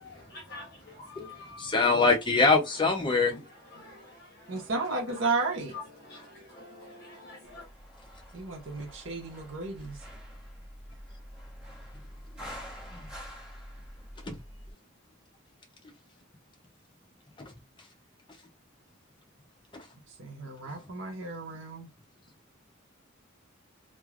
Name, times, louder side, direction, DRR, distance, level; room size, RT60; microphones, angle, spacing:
voice 1, 0.0-1.8 3.7-5.2 5.7-7.7, left 2 dB, 50° left, 0.9 m, -47 dB
voice 2, 1.6-3.3 8.8-8.9 12.9-13.0 14.2-14.4 17.4-17.9 19.7-19.9 20.6-20.7, left 3 dB, 20° left, 0.6 m, -25 dB
voice 3, 4.5-5.8 8.3-10.0 20.2-21.9, right 3 dB, 65° right, 0.7 m, -33 dB
sound 1, 7.4-14.7, equal, 5° right, 0.9 m, -46 dB
3.1 x 2.1 x 2.4 m
head